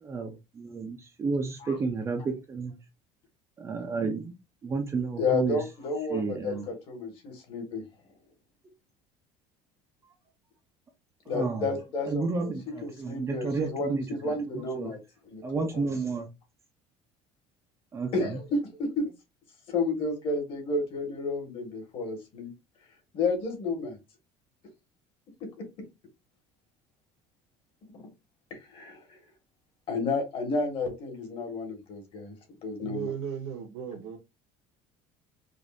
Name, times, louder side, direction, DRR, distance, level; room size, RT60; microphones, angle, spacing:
voice 1, 0.0-2.7 3.6-4.3 4.6-5.6 6.1-6.7 11.3-11.7 12.1-15.0 15.4-16.3 17.9-18.4, right 4 dB, 20° right, 0.6 m, -31 dB
voice 2, 5.2-7.8 11.3-12.5 12.8-15.0 15.3-15.8 18.1-19.1 19.7-22.5 23.1-24.0 25.6-25.7 27.9-28.1 28.5-29.2 29.9-32.4 32.6-33.1, left 3 dB, 45° left, 1.8 m, -31 dB
voice 3, 32.8-34.2, right 8 dB, 75° right, 1.2 m, -35 dB
5.0 x 2.6 x 2.6 m
cardioid pair, 155°, 13 cm